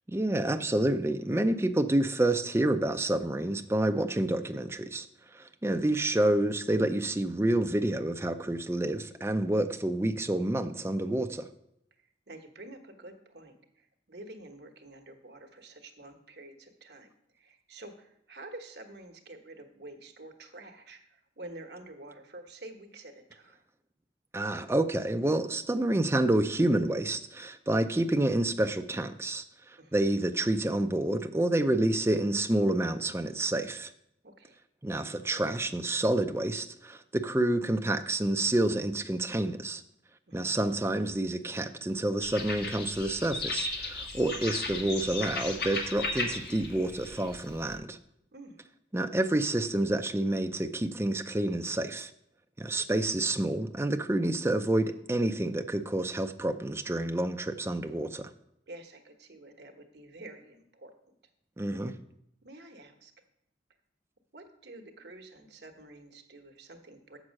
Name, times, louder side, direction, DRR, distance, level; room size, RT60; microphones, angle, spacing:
voice 1, 0.1-5.1 5.3-11.5 24.3-33.9 34.8-39.8 40.3-48.0 48.9-52.1 52.6-58.3 61.6-62.0, right 1 dB, 15° right, 7 dB, 0.4 m, -28 dB
voice 2, 12.3-17.1 17.3-23.6 29.8-30.0 34.2-34.6 40.3-40.5 48.3-48.6 58.7-60.9 62.4-63.1 64.3-67.2, right 2 dB, 70° right, 4 dB, 1.1 m, -48 dB
sound 1, 42.2-47.7, left 3 dB, 55° left, 1.6 m, -36 dB
7.3 x 6.1 x 6.3 m, 0.78 s
head